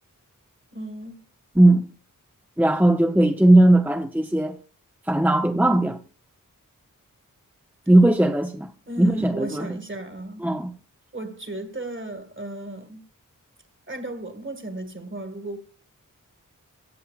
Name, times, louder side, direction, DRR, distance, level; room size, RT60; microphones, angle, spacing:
voice 1, 0.7-1.2 8.9-10.4 11.1-13.0 13.9-15.6, right 1 dB, 35° right, 1.9 m, -35 dB
voice 2, 1.6-1.9 2.6-4.6 5.1-6.0 7.9-8.7 9.0-9.7 10.4-10.7, right 1 dB, 5° right, 0.8 m, -18 dB
14.0 x 7.4 x 2.4 m
cardioid pair, 45°, 33 cm